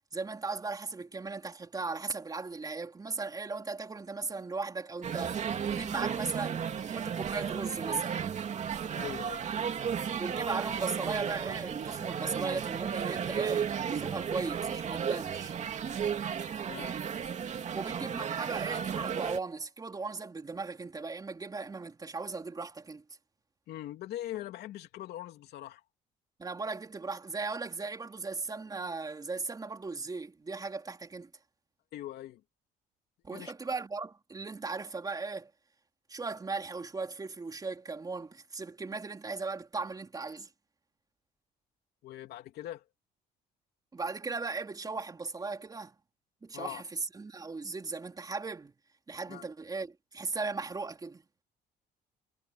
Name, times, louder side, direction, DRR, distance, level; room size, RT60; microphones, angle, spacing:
voice 1, 0.1-8.2 10.2-15.6 17.7-23.0 26.4-31.3 33.2-35.5 36.1-40.5 43.9-46.0 46.4-48.7 49.1-51.2, right 4 dB, 20° right, 3.9 m, -37 dB
sound 1, 5.0-19.4, right 7 dB, 45° right, 2.5 m, -34 dB
voice 2, 9.0-9.5 16.7-16.9 23.7-25.8 31.9-32.4 33.3-33.5 42.0-42.8 46.5-46.8 49.3-49.5, left 13 dB, 75° left, 3.0 m, -41 dB
cardioid pair, 110°, 17 cm